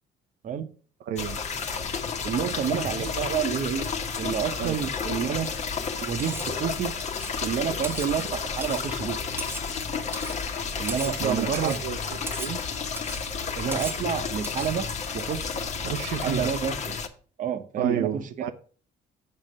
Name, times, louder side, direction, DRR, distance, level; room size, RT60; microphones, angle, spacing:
voice 1, 1.1-1.4 3.0-3.1 4.6-4.8 11.2-12.6 15.8-16.5 17.8-18.5, right 9 dB, 85° right, 0.8 m, -30 dB
sound 1, 1.2-17.1, left 5 dB, 40° left, 1.1 m, -31 dB
voice 2, 2.2-3.9 4.2-5.5 6.0-6.9 7.4-9.2 10.8-11.8 13.6-14.9 15.1-15.5 16.2-17.0 17.4-18.2, right 8 dB, 50° right, 1.0 m, -29 dB
Cutlery silverware, 6.2-6.6 7.0-7.4 7.8-8.1 8.6-8.9 9.4-9.7 10.1-10.4 10.9-11.2 11.5-11.9 12.3-12.6 13.0-13.2 13.7-14.1 14.4-14.8, right 3 dB, 15° right, 0.5 m, -38 dB
7.6 x 4.8 x 6.5 m
cardioid pair, 110°, 17 cm